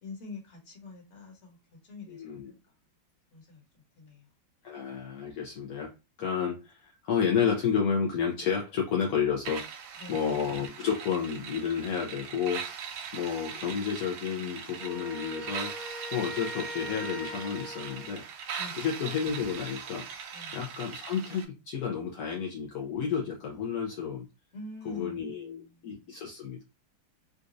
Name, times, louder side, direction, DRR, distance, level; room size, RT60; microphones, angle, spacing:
voice 1, 0.0-2.7 3.3-3.6 4.0-4.3 10.0-10.2 18.6-18.7 20.3-20.6 24.5-26.1, left 3 dB, 40° left, 1.4 m, -45 dB
voice 2, 2.1-2.5 4.6-5.9 6.2-9.7 10.1-18.4 18.7-20.1 20.5-24.3 24.8-26.6, left 7 dB, 70° left, 0.9 m, -31 dB
sound 1, 9.5-21.5, right 7 dB, 85° right, 1.4 m, -41 dB
Wind instrument woodwind instrument, 14.8-18.1, equal, 50° right, 0.4 m, -41 dB
4.0 x 2.4 x 2.5 m
omnidirectional pair, 2.1 m